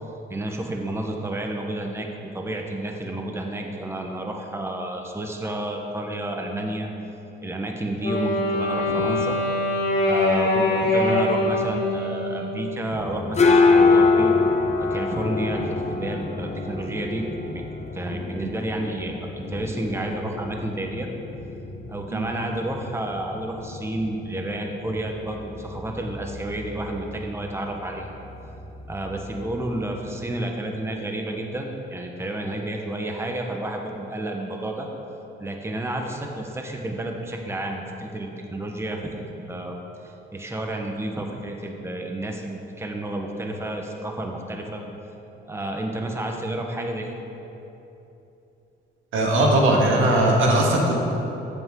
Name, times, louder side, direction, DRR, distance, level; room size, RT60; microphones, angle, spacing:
voice 1, 0.3-6.9 7.4-9.4 10.0-14.3 14.8-17.6 17.9-21.1 21.9-28.1 28.9-34.9 35.4-39.8 40.0-44.8 45.4-47.2, right 1 dB, 15° right, 2 dB, 1.1 m, -30 dB
Wind instrument woodwind instrument, 8.0-13.1, left 2 dB, 55° left, 2.3 m, -23 dB
sound 1, 12.9-30.4, left 4 dB, 35° left, 0.9 m, -26 dB
voice 2, 49.1-51.0, right 1 dB, 80° right, -1 dB, 1.8 m, -19 dB
13.5 x 8.3 x 3.8 m, 3.0 s
cardioid pair, 90°, 20 cm